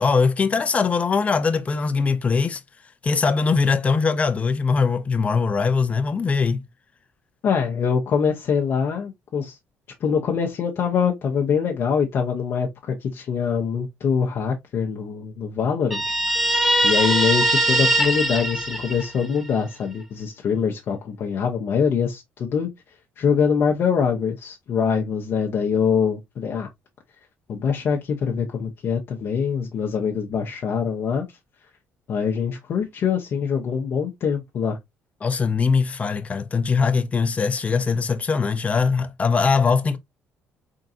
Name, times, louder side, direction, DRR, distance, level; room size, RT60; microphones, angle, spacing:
voice 1, 0.0-2.6 3.0-6.6 35.2-40.0, left 5 dB, 30° left, 0.6 m, -21 dB
voice 2, 7.4-9.6 10.0-16.2 16.8-22.7 23.2-26.7 27.5-31.3 32.1-34.8, left 6 dB, 55° left, 0.9 m, -24 dB
Guitar, 15.9-19.5, right 1 dB, 5° right, 1.0 m, -21 dB
3.7 x 3.7 x 2.7 m
cardioid pair, 90°, 5 cm